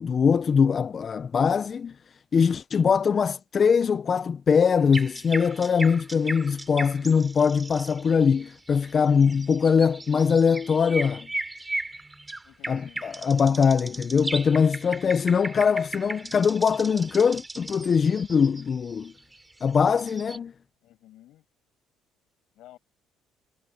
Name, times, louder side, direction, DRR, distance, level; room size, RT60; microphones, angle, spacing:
voice 1, 0.0-2.0 2.3-11.3 12.7-19.1 19.6-20.5, left 6 dB, 25° left, 0.3 m, -22 dB
sound 1, 4.8-20.4, right 2 dB, 10° right, 2.5 m, -37 dB
voice 2, 12.4-13.0 13.7-14.0 20.8-21.4 22.5-22.8, left 14 dB, 60° left, 7.8 m, -53 dB
cardioid pair, 170°, 0 cm